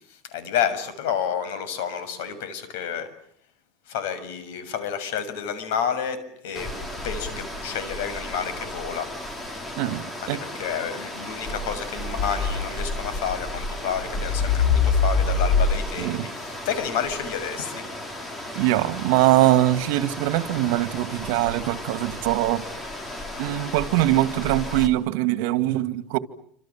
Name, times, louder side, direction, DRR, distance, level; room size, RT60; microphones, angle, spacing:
voice 1, 0.1-3.1 3.9-6.7 7.0-9.1 10.2-17.8, left 8 dB, 85° left, 6.8 m, -30 dB
sound 1, 6.5-24.9, left 4 dB, 15° left, 3.4 m, -29 dB
Bicycle, 9.2-16.8 17.1-17.2, right 5 dB, 10° right, 7.5 m, -50 dB
voice 2, 9.8-10.4 16.0-16.3 18.6-22.6 23.4-26.2, right 15 dB, 75° right, 2.2 m, -22 dB
29.0 x 27.0 x 7.6 m
cardioid pair, 160°, 0 cm